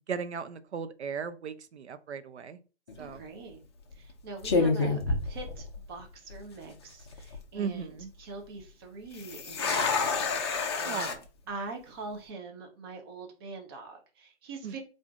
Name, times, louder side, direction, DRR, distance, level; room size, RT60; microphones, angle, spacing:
voice 1, 0.1-2.6 3.0-3.3 7.5-8.1 10.8-11.2 14.6-14.8, right 6 dB, 75° right, 11 dB, 0.5 m, -36 dB
sound 1, 2.9-3.2 3.9-4.1 4.4-6.0 6.3-6.4 7.0-7.4 9.1-11.2, left 4 dB, 25° left, 0.5 m, -29 dB
voice 2, 3.0-3.6 3.9-11.1 11.5-14.8, right 3 dB, 20° right, 4 dB, 0.6 m, -43 dB
3.5 x 2.5 x 3.4 m, 0.34 s
figure-of-eight pair, 140°, 34 cm